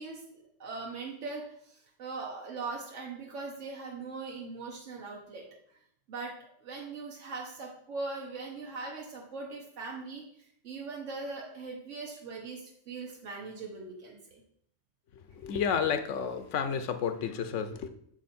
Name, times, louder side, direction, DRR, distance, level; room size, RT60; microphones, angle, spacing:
voice 1, 0.0-5.4 6.1-6.3 6.6-10.2 10.6-14.4, right 3 dB, 90° right, -2 dB, 1.3 m, -40 dB
voice 2, 15.4-17.9, left 7 dB, 90° left, 9 dB, 1.0 m, -31 dB
6.2 x 4.1 x 4.2 m, 0.68 s
omnidirectional pair, 1.2 m